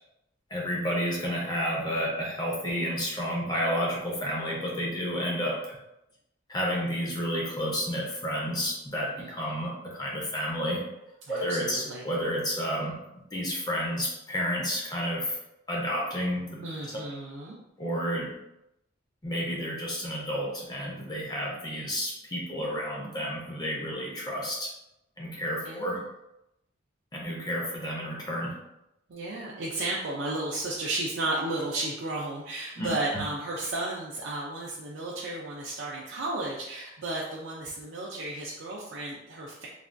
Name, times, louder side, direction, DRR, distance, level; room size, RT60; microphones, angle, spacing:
voice 1, 0.5-5.7 6.5-10.8 11.3-13.0 13.3-15.4 15.7-16.6 17.8-18.3 19.2-24.7 25.2-26.0 27.1-28.6 32.8-32.9, equal, 20° left, -2 dB, 0.5 m, -31 dB
voice 2, 11.2-12.0 16.6-17.6 25.6-26.0 29.1-39.7, right 2 dB, 65° right, -4 dB, 0.4 m, -33 dB
3.3 x 2.2 x 2.5 m, 0.87 s
head